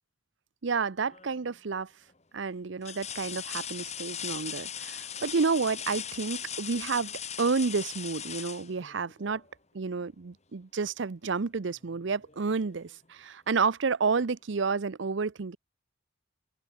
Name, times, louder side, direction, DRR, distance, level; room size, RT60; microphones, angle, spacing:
voice 1, 0.6-1.9 2.3-7.1 7.4-9.4 9.7-15.6, right 4 dB, 70° right, 0.6 m, -30 dB
sound 1, 1.1-1.5 2.1-2.2 2.8-9.5 11.3-11.4 11.9-12.9 14.2-14.3, left 9 dB, 35° left, 3.9 m, -39 dB
open air
head